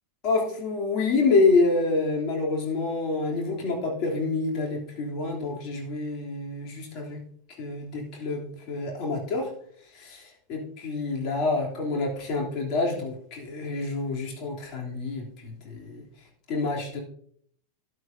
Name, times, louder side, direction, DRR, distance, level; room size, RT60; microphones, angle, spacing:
voice 1, 0.2-7.2 7.6-9.5 9.9-16.0 16.5-17.0, left 3 dB, 40° left, -2 dB, 3.2 m, -27 dB
12.5 x 10.5 x 2.7 m, 0.64 s
figure-of-eight pair, 90°, 0 cm